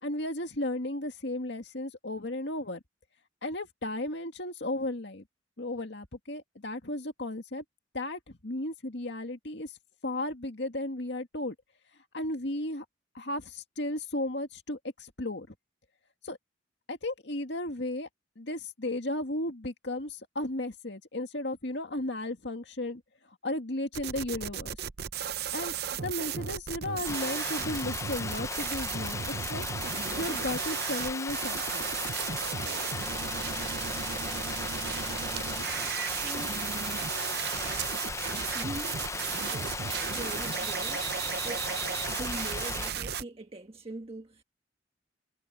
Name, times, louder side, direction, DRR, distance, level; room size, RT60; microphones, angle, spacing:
voice 1, 0.0-2.8 3.4-5.2 5.6-7.6 7.9-9.8 10.0-11.6 12.1-12.9 13.1-15.6 16.2-16.4 16.9-18.1 18.4-23.0 23.3-24.8 25.5-25.8 26.0-29.7 30.2-31.9, left 1 dB, 65° left, 2.1 m, -34 dB
sound 1, 23.9-43.2, right 8 dB, 55° right, 0.7 m, -35 dB
Water, 27.0-42.9, left 4 dB, 15° left, 0.6 m, -37 dB
sound 2, 31.7-40.2, right 10 dB, 85° right, 6.3 m, -45 dB
voice 2, 36.2-36.6 38.5-39.1 39.5-41.1 41.4-41.8 42.1-44.4, right 2 dB, 30° right, 1.4 m, -42 dB
head